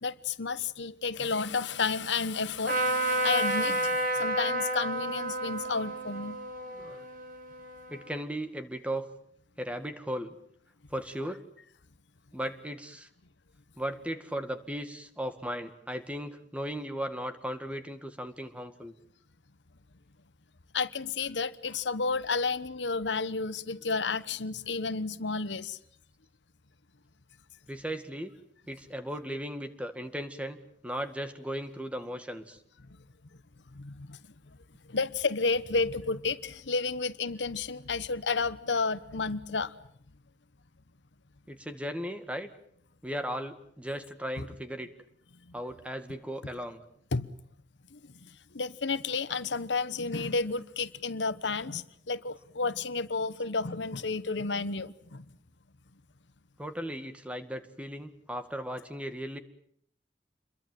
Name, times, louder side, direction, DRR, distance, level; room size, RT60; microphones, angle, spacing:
voice 1, 0.0-6.4 20.7-25.8 33.7-34.6 34.9-39.7 44.4-44.5 45.5-45.6 47.1-47.3 47.9-55.2, left 4 dB, 85° left, 1.1 m, -31 dB
Trumpet, 2.7-8.2, right 2 dB, 50° right, 5.4 m, -31 dB
voice 2, 6.7-7.1 7.9-9.1 9.6-10.4 10.9-11.4 12.3-13.1 13.8-18.9 27.7-28.3 28.7-30.6 30.8-32.6 41.5-42.5 43.0-44.9 45.5-46.8 56.6-59.4, equal, 5° right, 2.0 m, -36 dB
28.0 x 22.5 x 7.6 m
head